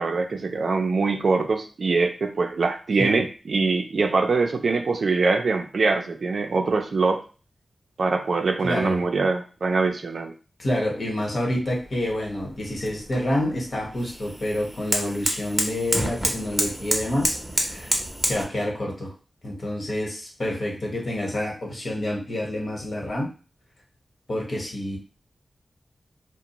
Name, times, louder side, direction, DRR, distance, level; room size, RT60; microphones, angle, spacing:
voice 1, 0.0-7.2 8.0-10.3, right 4 dB, 70° right, 5 dB, 0.4 m, -23 dB
voice 2, 8.6-9.0 10.6-17.9 18.2-19.1 19.4-23.3 24.3-25.0, left 1 dB, 50° left, -1 dB, 1.0 m, -28 dB
sound 1, 11.7-18.4, equal, 10° right, 0.6 m, -29 dB
2.4 x 2.0 x 2.9 m, 0.35 s
wide cardioid pair, 70°, 0 cm